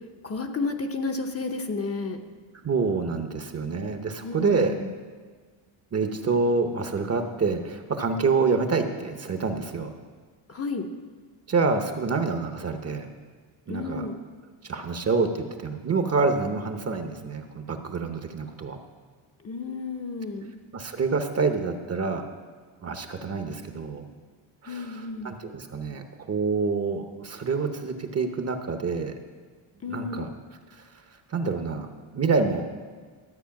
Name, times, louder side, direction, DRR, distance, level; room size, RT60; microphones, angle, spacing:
voice 1, 0.2-2.2 4.2-4.9 10.5-10.9 13.7-14.2 19.4-20.5 24.7-25.3 29.8-30.2, left 3 dB, 30° left, 4 dB, 0.8 m, -32 dB
voice 2, 2.6-4.7 5.9-9.9 11.5-13.1 13.7-14.0 14.6-18.8 20.7-22.2 22.8-24.0 24.6-29.1 29.9-30.3 30.7-30.8 31.3-32.7, right 4 dB, 30° right, 6 dB, 0.8 m, -27 dB
13.0 x 8.0 x 5.8 m, 1.5 s
cardioid pair, 155°, 47 cm